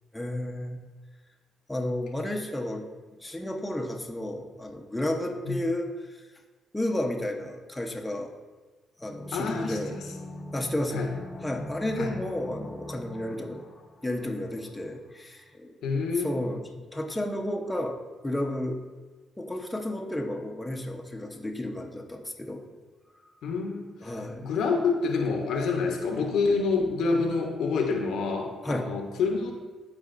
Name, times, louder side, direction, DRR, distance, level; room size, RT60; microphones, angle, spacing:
voice 1, 0.1-0.8 1.7-2.9 3.2-6.2 6.7-8.3 9.0-9.9 10.5-11.1 11.4-13.6 14.0-15.7 16.2-18.0 18.2-18.8 19.4-22.7 24.0-24.5 28.6-28.9, left 1 dB, 10° left, 1 dB, 0.9 m, -32 dB
sound 1, 9.0-14.7 14.9-15.0, left 1 dB, 35° left, 0.9 m, -41 dB
voice 2, 9.3-10.1 10.9-11.1 12.0-12.1 15.8-16.4 23.4-24.1 24.4-29.5, left 4 dB, 75° left, 3 dB, 0.9 m, -27 dB
11.5 x 4.2 x 2.6 m, 1.3 s
supercardioid pair, 70°, 0 cm